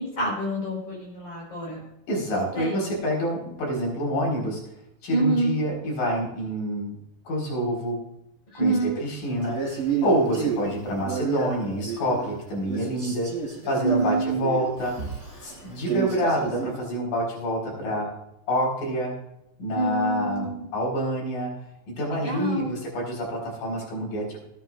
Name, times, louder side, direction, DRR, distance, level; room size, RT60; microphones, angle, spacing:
voice 1, 0.0-1.8 2.5-2.9 5.1-5.5 8.5-9.0 13.8-14.5 19.7-20.6 22.2-22.8, right 2 dB, 45° left, -3 dB, 5.9 m, -26 dB
voice 2, 2.1-4.6 5.0-6.9 7.3-8.0 8.6-13.3 13.7-15.1 15.4-18.1 18.5-19.1 19.6-21.6 21.9-24.4, equal, 80° left, -2 dB, 5.9 m, -27 dB
Male speech man speaking, 9.4-12.4 12.7-16.8, right 6 dB, 20° right, 5.5 m, -31 dB
21.0 x 9.2 x 2.5 m, 0.85 s
omnidirectional pair, 3.8 m